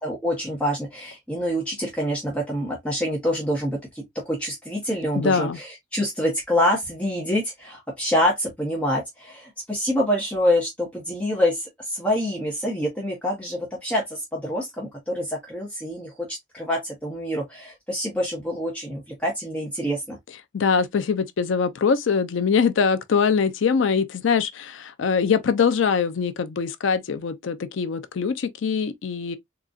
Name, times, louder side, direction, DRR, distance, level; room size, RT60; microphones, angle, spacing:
voice 1, 0.0-20.2, equal, 5° left, 0.8 m, -26 dB
voice 2, 5.2-5.6 20.5-29.4, left 6 dB, 65° left, 0.4 m, -23 dB
3.8 x 2.3 x 2.3 m
head